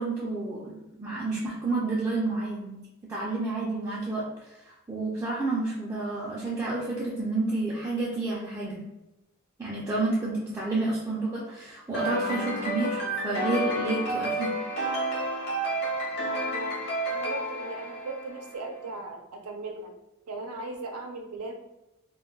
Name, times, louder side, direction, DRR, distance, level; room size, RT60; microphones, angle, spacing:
voice 1, 0.0-2.8 3.1-8.8 9.6-14.5, right 2 dB, 15° right, -7 dB, 0.4 m, -30 dB
sound 1, 11.9-18.6, right 1 dB, 50° left, 0.8 m, -30 dB
voice 2, 16.4-16.7 17.1-19.9 20.3-21.5, right 3 dB, 90° right, 3 dB, 0.5 m, -38 dB
2.2 x 2.2 x 3.8 m, 0.94 s
head